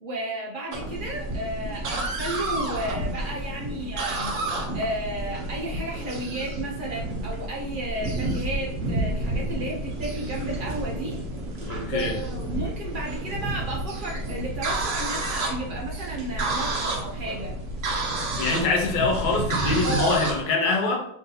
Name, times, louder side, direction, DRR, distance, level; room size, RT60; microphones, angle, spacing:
voice 1, 0.0-4.4 4.7-11.2 11.9-17.5 19.8-20.2, right 1 dB, 85° right, -2 dB, 0.4 m, -32 dB
sound 1, 0.7-20.4, right 2 dB, 55° right, 0.7 m, -30 dB
voice 2, 11.7-12.1 18.4-21.0, left 3 dB, 80° left, 1 dB, 1.5 m, -24 dB
3.6 x 2.8 x 3.8 m, 0.72 s
omnidirectional pair, 1.9 m